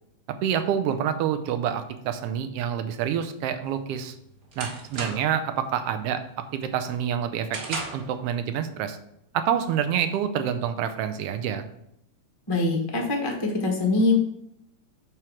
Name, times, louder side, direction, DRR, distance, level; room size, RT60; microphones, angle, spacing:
voice 1, 0.4-4.1 4.6-6.2 6.5-9.0 9.3-11.6, right 9 dB, 70° right, 8 dB, 1.5 m, -27 dB
sound 1, 3.7-5.5 5.9-6.2 6.6-8.2, right 3 dB, 35° right, 1.7 m, -36 dB
voice 2, 12.5-14.2, left 2 dB, 30° left, 0 dB, 0.4 m, -23 dB
8.9 x 3.2 x 6.3 m, 0.76 s
omnidirectional pair, 3.3 m